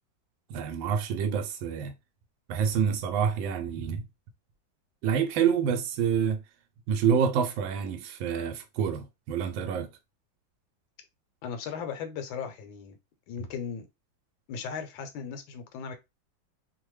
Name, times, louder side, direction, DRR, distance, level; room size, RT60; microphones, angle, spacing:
voice 1, 0.5-1.9 2.5-4.0 5.0-6.4 6.9-9.9, right 7 dB, 85° right, 1.3 m, -27 dB
voice 2, 11.4-13.0 13.3-13.8 14.5-15.9, left 6 dB, 80° left, 1.4 m, -37 dB
3.3 x 2.1 x 3.1 m
omnidirectional pair, 2.1 m